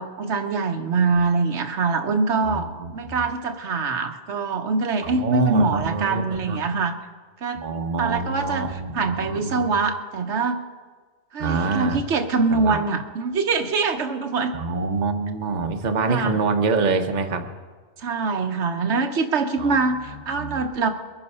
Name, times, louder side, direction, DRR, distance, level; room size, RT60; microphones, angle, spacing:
voice 1, 0.0-7.0 7.4-7.6 8.0-10.6 11.3-14.5 16.1-16.4 18.0-20.9, right 4 dB, 75° right, 6 dB, 1.2 m, -24 dB
voice 2, 2.4-3.2 5.0-6.6 7.6-9.7 11.4-12.0 12.5-12.8 14.5-17.5 19.6-19.8 20.1-20.6, right 4 dB, 40° right, 5 dB, 1.0 m, -26 dB
22.0 x 9.9 x 5.5 m, 1.5 s
omnidirectional pair, 1.2 m